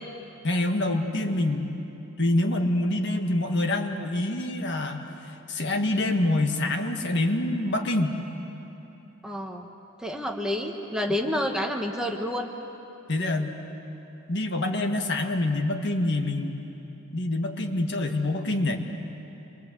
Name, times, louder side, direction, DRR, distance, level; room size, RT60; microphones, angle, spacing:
voice 1, 0.4-1.8 2.2-5.1 5.5-8.2 13.1-13.6 14.3-16.6 17.1-18.8, left 1 dB, 55° left, 4 dB, 1.8 m, -26 dB
voice 2, 9.2-9.7 10.0-12.5, left 1 dB, 5° right, 2 dB, 1.2 m, -29 dB
27.5 x 23.5 x 8.0 m, 2.9 s
head